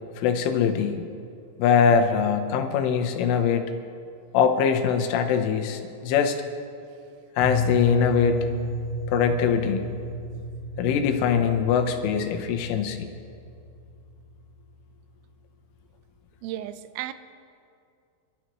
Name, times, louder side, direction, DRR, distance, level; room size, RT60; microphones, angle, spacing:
voice 1, 0.2-1.0 1.6-3.7 4.3-6.4 7.4-8.4 9.1-9.8 10.8-13.1, left 7 dB, 85° left, 6 dB, 3.5 m, -22 dB
sound 1, 7.4-15.5, equal, 65° left, 2.0 m, -34 dB
voice 2, 16.4-17.1, right 13 dB, 85° right, 12 dB, 3.2 m, -34 dB
28.5 x 12.5 x 3.1 m, 2.4 s
omnidirectional pair, 5.6 m